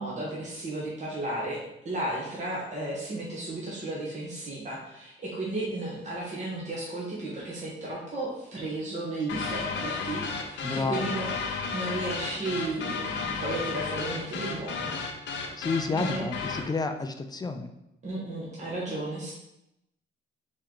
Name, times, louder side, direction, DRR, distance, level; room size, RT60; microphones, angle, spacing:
voice 1, 0.0-1.6 1.8-14.9 15.9-16.2 18.0-19.3, right 2 dB, 35° right, -6 dB, 1.4 m, -34 dB
sound 1, 9.3-16.7, left 5 dB, 65° left, 0.7 m, -33 dB
voice 2, 10.6-11.1 15.6-17.7, left 3 dB, 20° left, 7 dB, 0.4 m, -30 dB
4.3 x 3.1 x 3.9 m, 0.85 s
cardioid pair, 90°, 20 cm